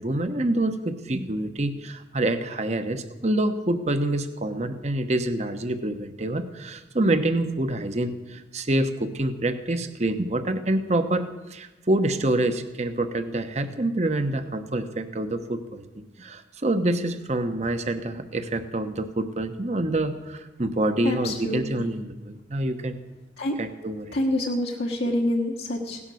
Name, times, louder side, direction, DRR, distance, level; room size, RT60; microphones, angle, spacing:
voice 1, 0.0-23.0 23.6-24.2, right 1 dB, 40° right, 8 dB, 1.0 m, -26 dB
voice 2, 21.0-21.6 23.4-23.6 24.1-26.0, left 1 dB, 60° left, -2 dB, 1.3 m, -26 dB
17.0 x 11.0 x 6.4 m, 1.1 s
head